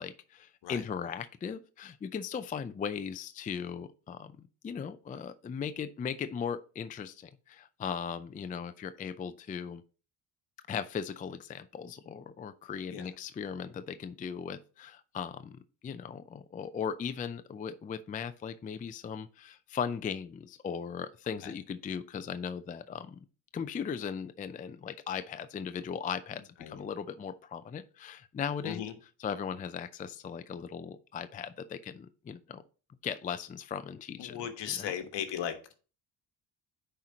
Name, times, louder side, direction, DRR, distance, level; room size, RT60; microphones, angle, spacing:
voice 1, 0.0-9.8 10.7-23.3 23.5-28.8 29.2-32.6 33.0-34.4 34.7-34.9, left 7 dB, 20° left, 0.4 m, -38 dB
voice 2, 28.6-28.9 34.2-35.5, left 9 dB, 65° left, 1.3 m, -36 dB
10.0 x 4.4 x 2.8 m
supercardioid pair, 80°, 45 cm